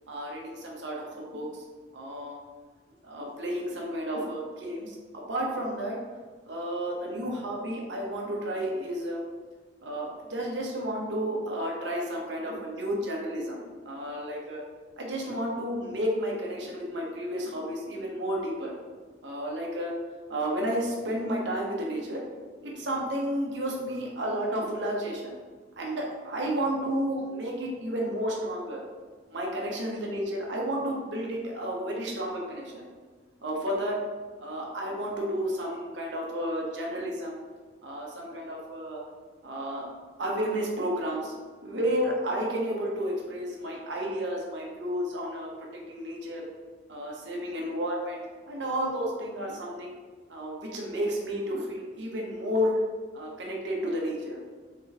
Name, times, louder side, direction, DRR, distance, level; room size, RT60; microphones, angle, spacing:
voice 1, 0.1-1.5 1.9-2.4 3.0-5.0 5.3-6.0 6.4-9.2 9.8-14.6 15.0-18.7 19.2-19.9 20.3-22.2 22.6-25.3 25.8-28.8 29.3-32.8 33.4-33.9 34.4-37.4 37.8-39.0 39.4-39.8 40.2-46.5 46.9-48.2 48.5-49.9 50.3-52.8 53.1-54.4, equal, 75° right, -2 dB, 0.9 m, -32 dB
3.8 x 3.6 x 3.3 m, 1.4 s
head